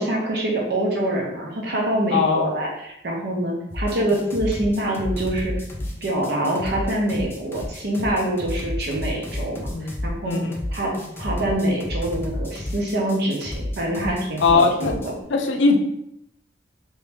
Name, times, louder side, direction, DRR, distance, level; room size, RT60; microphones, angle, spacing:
voice 1, 0.0-5.5 6.0-9.7 10.0-10.4 10.7-10.9 11.2-15.0, right 1 dB, 65° right, -1 dB, 0.9 m, -25 dB
voice 2, 2.1-2.5 9.7-9.9 10.2-10.6 14.4-14.9 15.3-15.7, left 4 dB, 90° left, 4 dB, 0.5 m, -19 dB
sound 1, 3.7-15.1, left 1 dB, 15° left, 0.6 m, -31 dB
3.0 x 2.8 x 3.4 m, 0.79 s
head